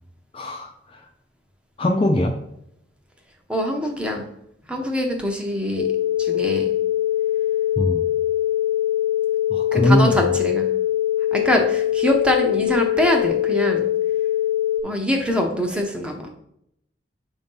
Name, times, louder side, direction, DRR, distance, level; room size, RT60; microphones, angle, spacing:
voice 1, 0.3-1.1 1.8-2.4 7.8-8.0 9.5-10.2, left 1 dB, 30° left, 3 dB, 0.4 m, -21 dB
voice 2, 3.5-4.3 4.7-5.9 6.2-6.7 9.7-10.7 11.3-13.8 14.8-16.3, left 1 dB, 5° right, 2 dB, 0.7 m, -23 dB
sound 1, 5.8-14.8, left 12 dB, 65° left, 0.6 m, -22 dB
6.8 x 2.7 x 5.4 m, 0.77 s
head